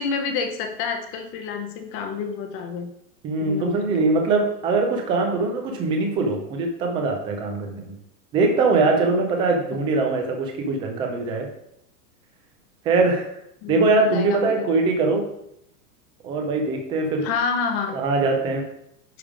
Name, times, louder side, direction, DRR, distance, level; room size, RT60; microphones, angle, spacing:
voice 1, 0.0-2.9 3.4-4.1 13.6-14.7 17.2-18.0, left 5 dB, 25° left, 6 dB, 0.8 m, -28 dB
voice 2, 3.2-7.9 8.3-11.5 12.8-13.3 13.7-15.2 16.2-17.3 17.9-18.6, right 3 dB, 10° right, 2 dB, 0.4 m, -22 dB
10.0 x 3.5 x 4.9 m, 0.76 s
supercardioid pair, 160°, 48 cm